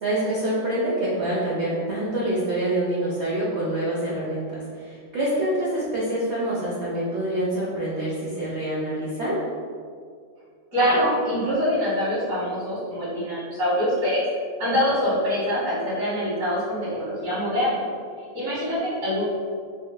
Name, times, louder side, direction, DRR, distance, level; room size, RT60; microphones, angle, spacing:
voice 1, 0.0-9.4, right 1 dB, 90° right, -7 dB, 0.5 m, -26 dB
voice 2, 10.7-14.2 14.6-17.8 18.3-19.2, equal, 65° right, -11 dB, 2.1 m, -24 dB
3.9 x 3.0 x 2.2 m, 2.1 s
omnidirectional pair, 2.0 m